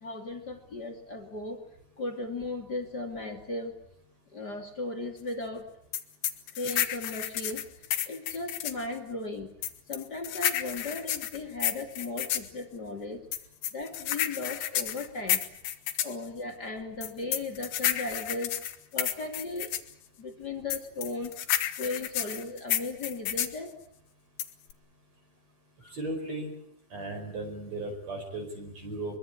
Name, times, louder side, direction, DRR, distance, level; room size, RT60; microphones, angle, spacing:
voice 1, 0.0-1.6 2.0-3.8 4.3-5.6 6.6-7.7 8.1-9.5 9.9-13.2 13.7-15.4 16.0-18.5 18.9-19.7 20.2-21.3 21.8-23.8 25.8-25.9, left 2 dB, 30° left, 3 dB, 2.5 m, -36 dB
sound 1, 5.9-8.8 9.6-12.5 13.3-16.2 17.0-19.9 20.7-23.6 24.4-24.7, left 11 dB, 75° left, 3.2 m, -31 dB
voice 2, 25.8-26.5 26.9-29.2, right 2 dB, 45° right, 2 dB, 6.1 m, -36 dB
24.0 x 23.5 x 8.5 m, 0.73 s
omnidirectional pair, 4.5 m